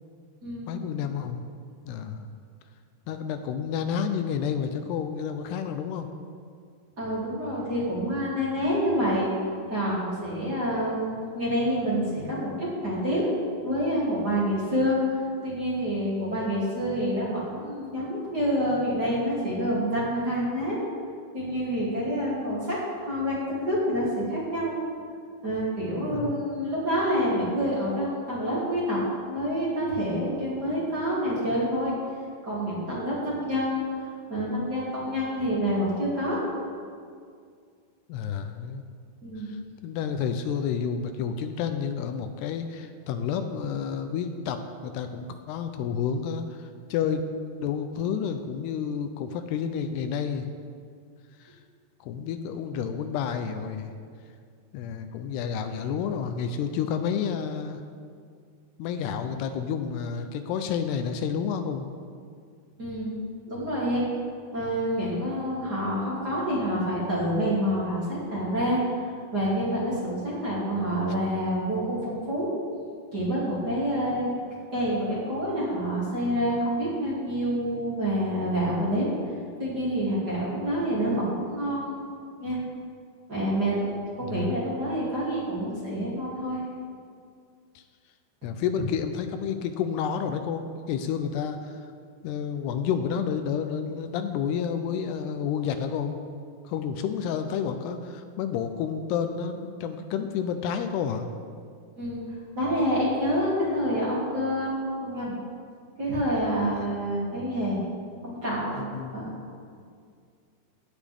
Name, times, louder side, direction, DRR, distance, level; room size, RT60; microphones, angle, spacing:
voice 1, 0.7-1.4 1.9-2.3 3.1-6.1 26.1-26.3 38.1-38.8 39.4-44.6 44.8-47.2 47.6-50.5 51.4-51.6 52.0-53.9 54.7-57.8 58.8-61.9 84.2-84.5 87.8-87.9 88.4-91.8 92.2-96.2 96.7-101.3 106.7-107.0 108.7-109.3, left 7 dB, 80° left, 7 dB, 2.7 m, -30 dB
voice 2, 7.0-9.3 9.7-13.3 13.6-15.1 15.4-20.8 21.3-24.7 25.4-29.0 29.3-31.9 32.4-36.4 39.2-39.5 62.8-63.1 63.5-64.0 64.5-68.8 69.3-72.5 73.1-74.3 74.7-79.1 79.6-81.9 82.4-82.6 83.3-86.6 102.0-102.2 102.5-104.7 105.0-105.4 106.0-107.8 108.2-109.4, equal, 25° right, -8 dB, 2.9 m, -27 dB
16.5 x 10.5 x 3.6 m, 2.2 s
omnidirectional pair, 4.7 m